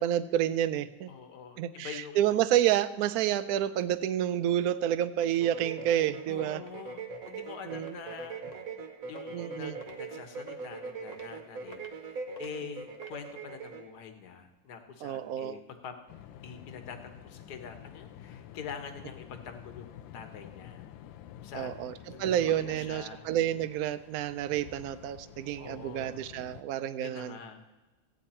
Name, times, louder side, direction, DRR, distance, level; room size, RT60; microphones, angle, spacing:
voice 1, 0.0-1.1 1.6-6.6 7.7-8.0 9.3-9.8 15.0-15.6 21.5-27.4, right 11 dB, 70° right, 13 dB, 0.9 m, -29 dB
voice 2, 1.1-2.3 6.3-8.4 9.1-16.0 16.4-20.9 21.4-23.2 25.6-26.2 27.0-27.6, left 6 dB, 60° left, 7 dB, 1.6 m, -45 dB
sound 1, 4.8-4.9 5.2-5.4 5.9-6.0 6.6-6.7 7.3-7.4 7.9-8.0 8.5-8.7 9.2-9.5 9.8-10.0 10.5-10.7 11.1-11.3 11.7-12.0 12.4-12.5 12.9-13.2, left 2 dB, 30° left, 0.8 m, -53 dB
sound 2, 5.3-13.9, right 5 dB, 50° right, 1.4 m, -41 dB
sound 3, 16.1-26.6, left 11 dB, 80° left, 1.3 m, -49 dB
15.0 x 9.3 x 4.3 m, 1.1 s
omnidirectional pair, 2.0 m